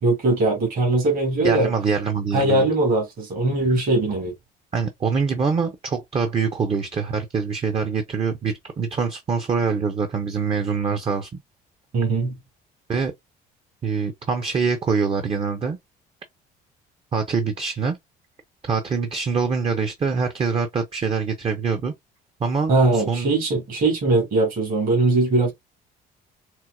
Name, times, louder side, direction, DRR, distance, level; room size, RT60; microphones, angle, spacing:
voice 1, 0.0-1.7 2.3-4.3 11.9-12.4 22.7-25.5, right 2 dB, 55° right, 2.1 m, -20 dB
voice 2, 1.4-2.7 4.7-11.3 12.9-13.1 13.8-15.8 17.1-18.0 18.6-21.9 22.4-23.3, right 5 dB, 35° right, 0.7 m, -24 dB
4.5 x 2.0 x 2.4 m
cardioid pair, 110°, 17 cm